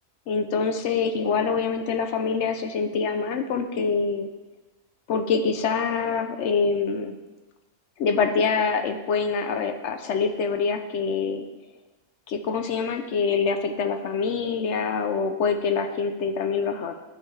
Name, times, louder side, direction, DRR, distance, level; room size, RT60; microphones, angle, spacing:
voice 1, 0.3-4.3 5.1-7.2 8.0-11.4 12.3-16.9, left 5 dB, 65° left, 6 dB, 0.8 m, -25 dB
12.0 x 4.9 x 3.1 m, 1.2 s
omnidirectional pair, 1.4 m